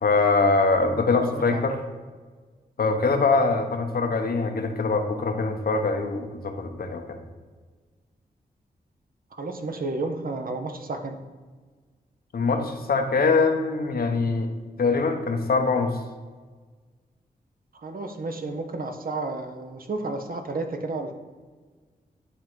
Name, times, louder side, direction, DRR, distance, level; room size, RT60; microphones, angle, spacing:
voice 1, 0.0-1.7 2.8-7.2 12.3-14.5 14.8-16.0, left 3 dB, 65° left, 4 dB, 1.0 m, -23 dB
voice 2, 1.1-1.7 9.3-11.2 17.7-21.1, right 3 dB, 60° right, 5 dB, 1.0 m, -32 dB
10.0 x 3.8 x 4.5 m, 1.4 s
cardioid pair, 50°, 17 cm